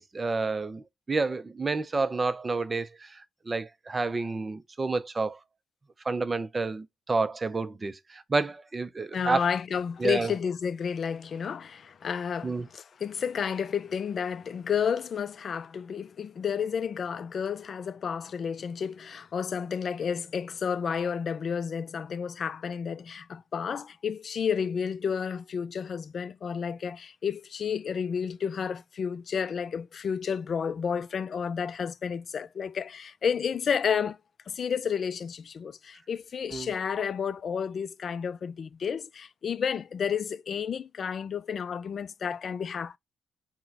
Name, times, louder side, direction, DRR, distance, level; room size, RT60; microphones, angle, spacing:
voice 1, 0.0-3.1 3.5-5.4 6.1-9.5 10.0-10.3 12.4-12.7 36.5-36.7, right 3 dB, 25° right, 0.5 m, -29 dB
voice 2, 9.1-34.2 34.5-43.0, left 7 dB, 50° left, 0.3 m, -31 dB
4.5 x 2.1 x 3.9 m
cardioid pair, 90°, 0 cm